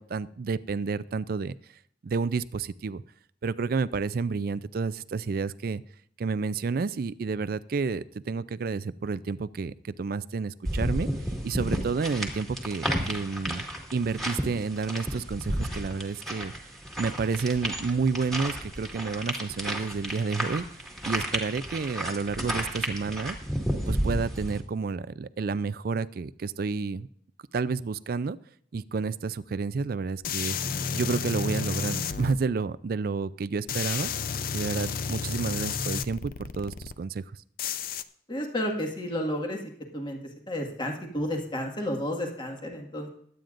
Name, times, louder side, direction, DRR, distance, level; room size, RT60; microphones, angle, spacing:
voice 1, 0.0-1.5 2.0-3.0 3.4-5.8 6.2-11.1 11.4-13.6 13.9-16.7 17.0-20.7 21.0-23.4 23.9-27.1 27.5-28.4 28.7-30.6 30.9-34.1 34.5-37.2, right 4 dB, 55° right, 16 dB, 0.4 m, -30 dB
sound 1, 10.6-24.6, equal, ahead, 2.0 m, -32 dB
sound 2, 30.2-32.3 33.7-36.9 37.6-38.0, left 6 dB, 55° left, 0.5 m, -31 dB
voice 2, 38.3-39.6 39.9-40.2 40.5-43.1, left 1 dB, 25° left, 2 dB, 1.8 m, -31 dB
21.5 x 9.2 x 2.6 m, 0.65 s
head